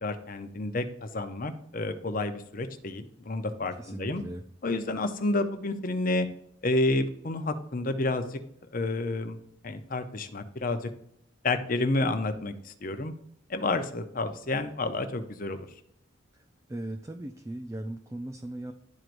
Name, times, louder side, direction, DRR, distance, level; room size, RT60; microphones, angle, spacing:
voice 1, 0.0-4.2 4.6-6.3 6.6-8.4 8.7-10.9 11.4-13.1 13.5-15.7, left 2 dB, 40° left, 8 dB, 0.7 m, -30 dB
voice 2, 3.8-4.4 16.3-16.4 16.7-18.7, right 1 dB, 15° right, 4 dB, 0.4 m, -38 dB
11.5 x 4.6 x 2.6 m, 0.74 s
head